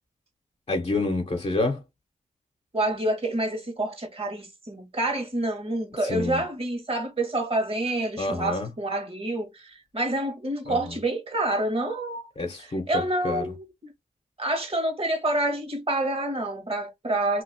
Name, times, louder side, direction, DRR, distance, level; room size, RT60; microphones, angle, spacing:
voice 1, 0.7-1.8 6.0-6.4 8.2-8.7 10.7-10.8 12.4-12.9 13.2-13.4, left 2 dB, 45° left, 1.0 m, -27 dB
voice 2, 2.7-12.2 12.6-13.9 14.4-17.4, right 1 dB, 40° right, 1.6 m, -28 dB
3.0 x 2.9 x 2.8 m
cardioid pair, 45°, 15 cm